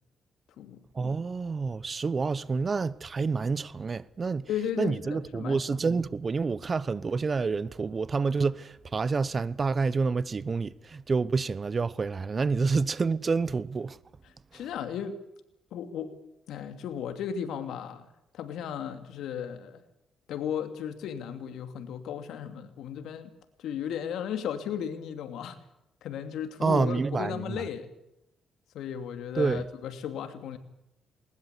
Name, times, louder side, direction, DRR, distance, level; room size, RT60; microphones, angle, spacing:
voice 1, 0.9-4.4 4.8-14.0 26.6-27.6 29.4-29.6, right 4 dB, 35° right, 1.0 m, -28 dB
voice 2, 4.5-5.6 14.2-15.2 15.7-16.1 16.5-18.1 18.3-19.8 20.3-23.3 23.6-25.6 26.0-27.9 28.7-30.6, left 8 dB, 80° left, 2.7 m, -35 dB
21.0 x 20.0 x 8.4 m
cardioid pair, 90°, 0 cm